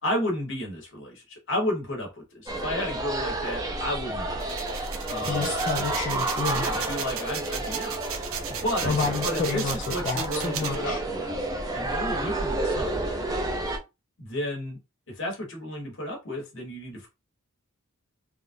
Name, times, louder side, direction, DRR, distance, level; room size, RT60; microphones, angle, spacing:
voice 1, 0.0-4.5 5.1-5.5 6.4-8.0 8.5-11.4 11.7-13.3 14.2-14.8 15.1-17.1, left 1 dB, 60° left, 1.3 m, -32 dB
sound 1, 2.5-13.8, right 2 dB, 15° right, 0.5 m, -30 dB
sound 2, 4.4-10.8, right 8 dB, 70° right, 0.5 m, -35 dB
voice 2, 5.3-6.7 8.8-9.7 10.0-11.0, left 4 dB, 35° left, 0.5 m, -29 dB
3.5 x 2.4 x 2.6 m
head